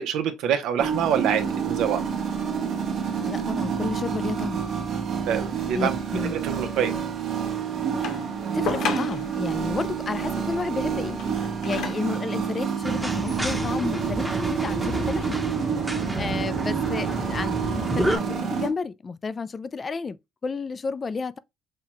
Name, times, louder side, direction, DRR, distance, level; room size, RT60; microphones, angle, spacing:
voice 1, 0.0-2.0 5.3-5.9 6.3-6.9 16.0-16.1, right 8 dB, 80° right, 0.8 m, -26 dB
sound 1, 0.8-18.7, right 7 dB, 55° right, 1.0 m, -28 dB
voice 2, 3.1-4.6 5.7-6.3 8.0-8.1 8.5-11.2 11.6-15.4 16.1-20.2 20.4-21.4, left 4 dB, 30° left, 0.3 m, -31 dB
sound 2, 8.0-9.4 11.0-12.2 13.0-13.1, left 6 dB, 75° left, 1.1 m, -32 dB
sound 3, 12.8-18.2, right 1 dB, 5° right, 0.8 m, -29 dB
5.6 x 2.2 x 3.0 m
cardioid pair, 110°, 0 cm